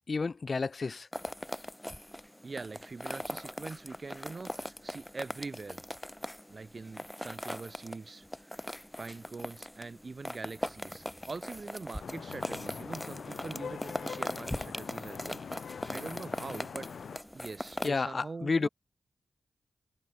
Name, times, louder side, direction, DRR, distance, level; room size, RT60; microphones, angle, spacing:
voice 1, 0.1-1.1 17.8-18.7, left 4 dB, 55° left, 1.2 m, -30 dB
sound 1, 1.1-17.9, left 1 dB, 10° left, 2.6 m, -40 dB
voice 2, 2.4-5.8 6.5-8.3 8.5-8.6 9.0-16.9 17.3-18.7, right 4 dB, 50° right, 5.3 m, -43 dB
Vehicle horn car horn honking / Traffic noise roadway noise, 12.0-17.2, left 6 dB, 80° left, 1.1 m, -43 dB
cardioid pair, 40°, 0 cm